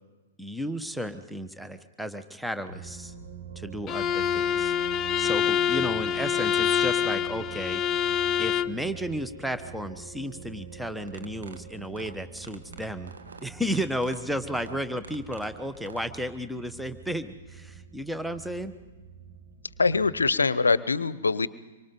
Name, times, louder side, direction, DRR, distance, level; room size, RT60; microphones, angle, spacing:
voice 1, 0.4-3.1 3.5-4.7 5.2-7.8 8.4-13.1 13.4-18.7, equal, ahead, 11 dB, 1.1 m, -33 dB
sound 1, 2.7-20.3, right 6 dB, 50° right, 3.0 m, -45 dB
Bowed string instrument, 3.9-8.8, left 9 dB, 25° left, 0.6 m, -26 dB
sound 2, 11.1-16.0, right 5 dB, 70° right, 1.5 m, -47 dB
voice 2, 19.8-21.5, left 4 dB, 75° left, 19 dB, 0.7 m, -23 dB
26.0 x 24.0 x 5.4 m, 1.2 s
figure-of-eight pair, 110°, 0 cm